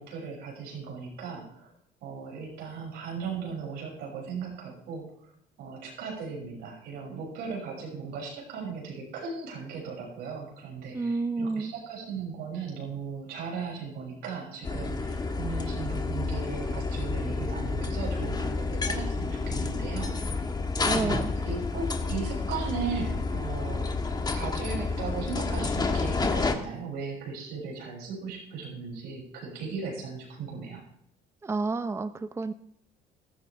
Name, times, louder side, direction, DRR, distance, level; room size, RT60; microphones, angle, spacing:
voice 1, 0.0-1.7 2.0-5.1 5.6-20.4 20.8-23.9 24.3-30.8, right 5 dB, 85° right, -2 dB, 6.6 m, -37 dB
voice 2, 10.9-11.7 20.8-21.3 31.4-32.5, right 3 dB, 15° right, 11 dB, 0.6 m, -30 dB
sound 1, 14.6-26.5, left 3 dB, 25° left, 1.4 m, -30 dB
15.0 x 13.5 x 3.4 m, 0.73 s
cardioid pair, 110°, 17 cm